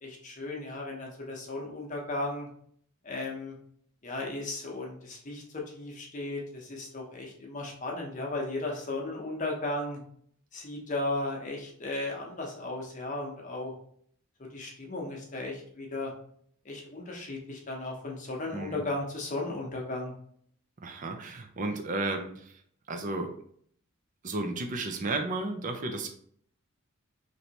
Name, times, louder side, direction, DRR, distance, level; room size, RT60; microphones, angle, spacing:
voice 1, 0.0-2.5 3.0-3.6 4.0-10.0 10.5-13.7 14.5-16.1 16.6-20.1, left 2 dB, 35° left, -1 dB, 0.7 m, -35 dB
voice 2, 20.8-22.3 22.9-23.3 24.2-26.1, right 2 dB, 35° right, 5 dB, 0.5 m, -33 dB
3.2 x 2.7 x 2.8 m, 0.62 s
head